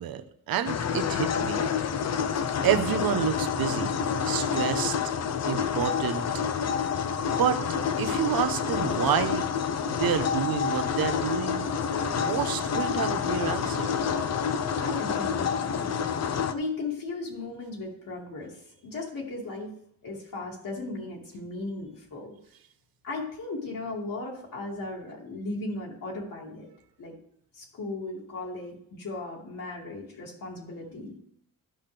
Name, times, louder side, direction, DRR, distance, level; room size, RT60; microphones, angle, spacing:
voice 1, 0.0-1.7 2.6-4.0 4.3-4.9 5.5-6.2 7.4-7.6 8.0-9.5 9.8-11.7 12.0-13.9, right 9 dB, 75° right, 8 dB, 0.9 m, -29 dB
sound 1, 0.7-16.5, left 7 dB, 45° left, 0.7 m, -28 dB
voice 2, 14.8-15.9 16.5-19.7 20.0-22.4 23.0-26.7 27.0-27.2 27.5-31.2, left 2 dB, 65° left, -3 dB, 2.6 m, -36 dB
13.5 x 5.8 x 3.4 m, 0.69 s
cardioid pair, 115°, 36 cm